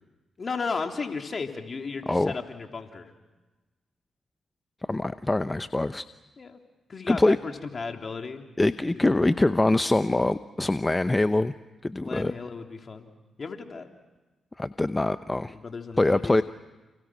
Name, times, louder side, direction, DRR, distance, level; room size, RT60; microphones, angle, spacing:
voice 1, 0.4-3.1 6.4-6.6 6.9-8.5 8.9-9.1 12.0-13.1 13.4-13.9 15.5-16.4, left 4 dB, 50° left, 4 dB, 3.4 m, -34 dB
voice 2, 2.1-2.4 4.9-6.0 7.1-7.4 8.6-11.5 11.8-12.3 14.6-15.5 16.0-16.4, left 2 dB, 20° left, 12 dB, 0.8 m, -24 dB
29.5 x 29.0 x 6.3 m, 1.2 s
hypercardioid pair, 45°, 0 cm